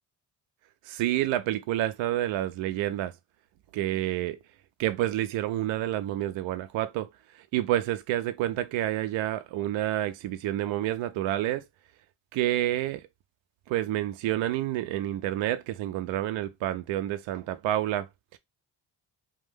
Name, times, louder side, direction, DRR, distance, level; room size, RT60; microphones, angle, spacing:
voice 1, 0.9-3.1 3.7-4.4 4.8-7.1 7.5-11.6 12.3-13.0 13.7-18.1 18.3-18.4, right 13 dB, 65° right, 0.5 m, -29 dB
2.6 x 2.1 x 3.4 m
supercardioid pair, 65°, 49 cm